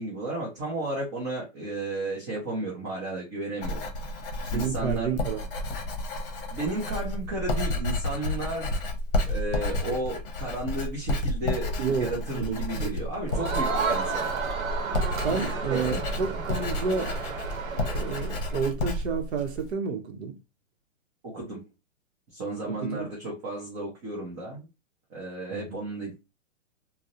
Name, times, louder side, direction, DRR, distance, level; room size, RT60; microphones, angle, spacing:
voice 1, 0.0-3.8 4.5-5.2 6.5-8.7 9.3-14.4 15.3-16.1 21.2-21.6 22.3-24.7 25.1-26.2, right 2 dB, 15° right, 0.4 m, -33 dB
Writing, 3.6-19.7, left 1 dB, 45° left, 0.8 m, -31 dB
voice 2, 4.5-5.4 11.8-12.9 15.2-17.1 17.9-20.4 22.6-23.1 25.5-25.8, right 5 dB, 55° right, 0.7 m, -30 dB
Crowd, 13.3-18.6, right 5 dB, 85° right, 0.8 m, -32 dB
2.3 x 2.0 x 2.6 m
hypercardioid pair, 135°, 39 cm